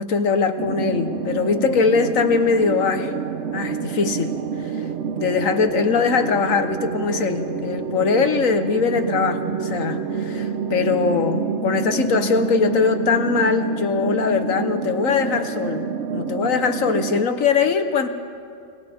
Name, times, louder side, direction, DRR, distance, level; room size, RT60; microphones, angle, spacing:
voice 1, 0.0-3.1 3.5-4.4 4.7-4.8 5.2-18.1, left 5 dB, 55° left, 8 dB, 1.3 m, -21 dB
sound 1, 0.6-17.2, right 5 dB, 55° right, 0.8 m, -28 dB
29.5 x 22.0 x 4.3 m, 2.3 s
omnidirectional pair, 1.9 m